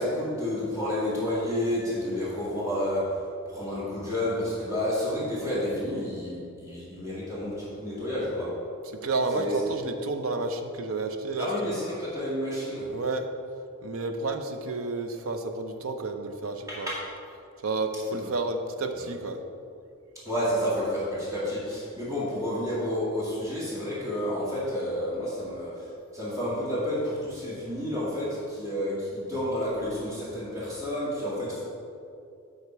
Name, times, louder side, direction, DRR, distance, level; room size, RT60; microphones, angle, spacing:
voice 1, 0.0-3.2 3.5-8.6 9.3-9.6 11.4-12.9 16.7-17.1 18.1-18.2 19.0-19.1 20.3-31.6, left 1 dB, 15° right, -8 dB, 2.0 m, -30 dB
voice 2, 9.0-11.5 12.9-13.3 13.8-16.9 17.6-19.4, right 3 dB, 85° right, 6 dB, 0.7 m, -30 dB
8.2 x 5.8 x 4.6 m, 2.5 s
head